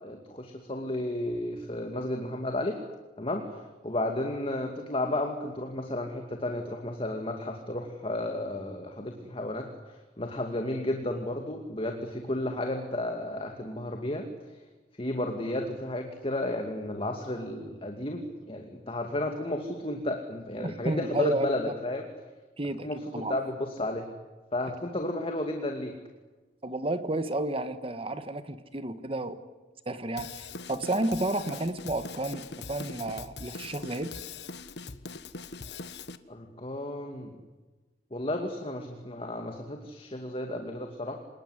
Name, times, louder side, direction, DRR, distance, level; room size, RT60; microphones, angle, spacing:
voice 1, 0.0-2.8 3.2-3.4 3.8-9.7 10.2-14.2 15.0-22.1 22.8-24.0 24.5-25.9 36.3-37.4 38.1-41.1, left 1 dB, 30° left, 4 dB, 2.5 m, -33 dB
voice 2, 20.6-21.5 22.6-22.9 23.1-23.3 26.6-29.4 29.8-34.1, right 1 dB, 30° right, 11 dB, 1.6 m, -31 dB
Drum kit / Drum, 30.2-36.2, left 4 dB, 75° left, 1.3 m, -42 dB
27.0 x 20.0 x 9.9 m, 1.2 s
head